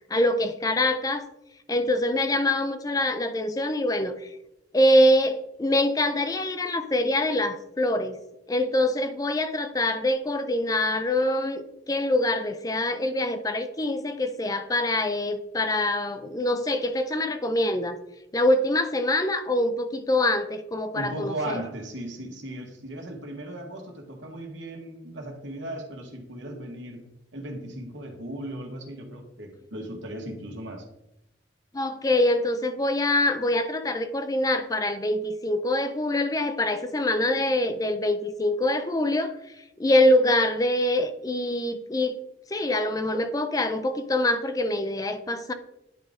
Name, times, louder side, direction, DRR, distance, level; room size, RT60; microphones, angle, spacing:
voice 1, 0.1-1.3 1.7-4.3 4.7-8.2 8.5-18.0 18.3-21.6 31.7-39.3 39.8-42.2 42.5-45.5, left 1 dB, 20° left, 9 dB, 0.5 m, -24 dB
voice 2, 20.9-27.0 27.3-30.9, right 1 dB, 85° right, 2 dB, 1.5 m, -37 dB
9.8 x 3.9 x 3.6 m, 0.88 s
head